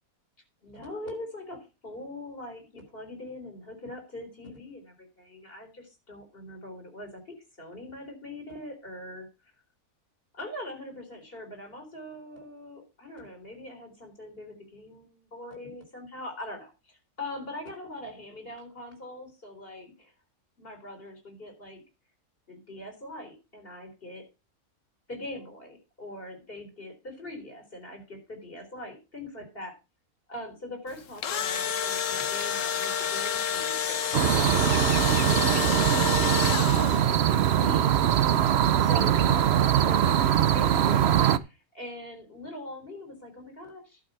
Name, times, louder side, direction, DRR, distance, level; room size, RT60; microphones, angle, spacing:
voice 1, 0.6-9.3 10.3-20.1 20.6-21.8 22.5-24.3 25.1-29.7 30.3-37.9 38.8-44.0, left 1 dB, 40° left, 5 dB, 4.2 m, -42 dB
Engine / Drill, 31.0-37.2, left 8 dB, 60° left, 1.2 m, -29 dB
sound 1, 34.1-41.4, right 10 dB, 55° right, 0.8 m, -22 dB
11.5 x 5.4 x 6.8 m, 0.28 s
omnidirectional pair, 1.5 m